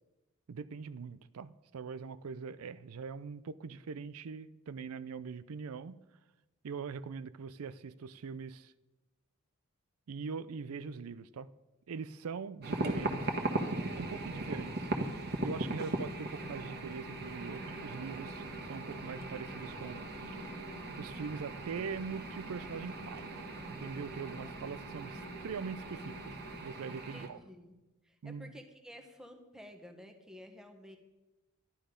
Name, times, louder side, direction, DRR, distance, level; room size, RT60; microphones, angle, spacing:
voice 1, 0.5-6.0 6.6-8.7 10.1-11.5 11.9-13.3 13.9-14.9 15.4-20.5 21.0-23.3 23.7-26.3 26.6-27.4 28.2-28.5, right 5 dB, 80° right, 0.5 m, -42 dB
sound 1, 12.6-27.3, right 2 dB, 45° right, 1.3 m, -39 dB
sound 2, 16.0-26.6, equal, 50° left, 1.0 m, -50 dB
voice 2, 24.3-25.1 27.1-27.7 28.0-31.0, equal, 5° right, 1.2 m, -53 dB
12.0 x 11.5 x 5.1 m
head